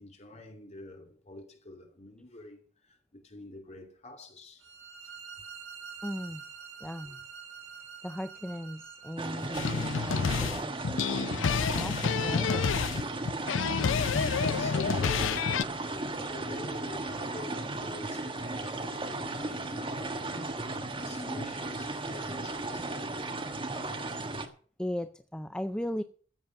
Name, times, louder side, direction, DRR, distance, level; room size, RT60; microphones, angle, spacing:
voice 1, 0.0-4.7 5.0-5.1 7.0-7.1 14.2-23.5 24.2-24.5, left 1 dB, 35° left, 2.8 m, -47 dB
sound 1, 4.6-10.4, right 6 dB, 85° right, 6.3 m, -47 dB
voice 2, 6.0-6.4 6.8-7.2 8.0-10.9 11.7-13.1 24.8-26.0, equal, 5° left, 0.5 m, -37 dB
sound 2, 9.2-24.5, right 2 dB, 25° right, 1.5 m, -35 dB
sound 3, 9.5-15.6, left 6 dB, 70° left, 0.5 m, -29 dB
14.0 x 7.2 x 6.4 m
head